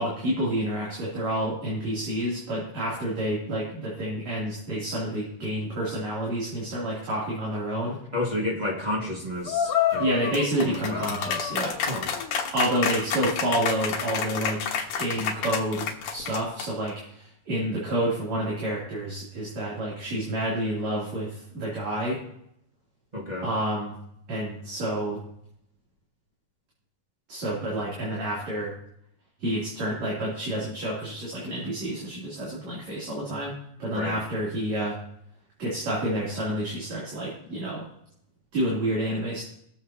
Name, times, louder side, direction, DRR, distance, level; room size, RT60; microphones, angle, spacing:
voice 1, 0.0-8.0 10.0-11.8 12.5-14.7 15.0-22.2 23.4-24.0 24.3-25.2 27.3-28.7 29.4-33.5 33.8-35.0 35.6-37.8 38.5-39.4, right 1 dB, 50° right, -7 dB, 4.2 m, -29 dB
voice 2, 8.1-10.0 10.6-11.1 11.9-12.1 23.1-23.5 33.9-34.2, left 1 dB, 25° right, -4 dB, 0.9 m, -31 dB
sound 1, 9.5-16.9, left 7 dB, 70° left, 2.6 m, -28 dB
20.5 x 7.7 x 2.9 m, 0.73 s
omnidirectional pair, 4.0 m